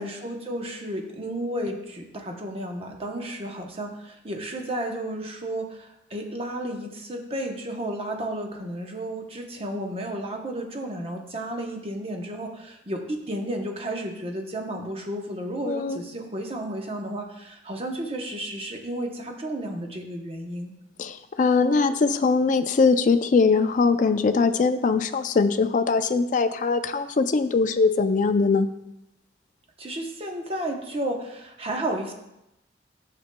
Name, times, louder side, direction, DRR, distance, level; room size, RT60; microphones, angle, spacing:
voice 1, 0.0-20.7 29.8-32.1, right 1 dB, 30° right, 3 dB, 0.8 m, -32 dB
voice 2, 15.7-16.0 21.0-28.7, left 4 dB, 45° left, 10 dB, 0.4 m, -21 dB
9.4 x 6.7 x 2.2 m, 0.87 s
head